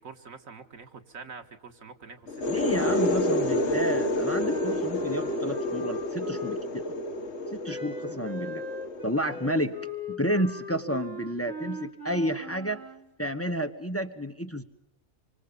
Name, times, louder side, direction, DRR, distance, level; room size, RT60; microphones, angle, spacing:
voice 1, 0.0-3.0, right 5 dB, 90° right, 6 dB, 2.2 m, -46 dB
sound 1, 2.3-9.8, left 1 dB, 55° left, 1.6 m, -29 dB
voice 2, 2.5-6.9 7.5-8.6 9.0-9.7 10.1-12.8 13.2-14.6, equal, 10° left, 7 dB, 1.2 m, -31 dB
Wind instrument woodwind instrument, 2.7-6.9 7.6-13.0, left 1 dB, 70° right, 3.9 m, -40 dB
26.5 x 25.5 x 5.4 m, 0.82 s
omnidirectional pair, 1.4 m